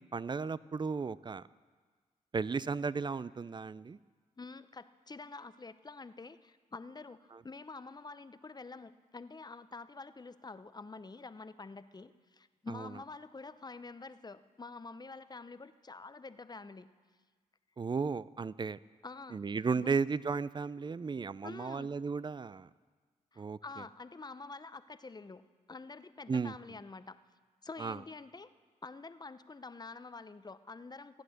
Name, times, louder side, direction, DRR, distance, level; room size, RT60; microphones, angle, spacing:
voice 1, 0.0-1.5 2.3-4.0 7.3-7.4 12.7-12.9 17.8-18.8 19.3-22.7 23.4-23.8 26.3-26.5 27.8-28.0, right 5 dB, 30° right, 18 dB, 0.4 m, -35 dB
voice 2, 4.4-16.9 19.0-19.4 19.7-20.0 21.4-21.9 23.3-25.4 25.7-27.2 27.6-28.5 28.8-31.2, left 3 dB, 30° left, 13 dB, 0.7 m, -47 dB
14.5 x 8.9 x 6.5 m, 1.5 s
supercardioid pair, 50°, 15 cm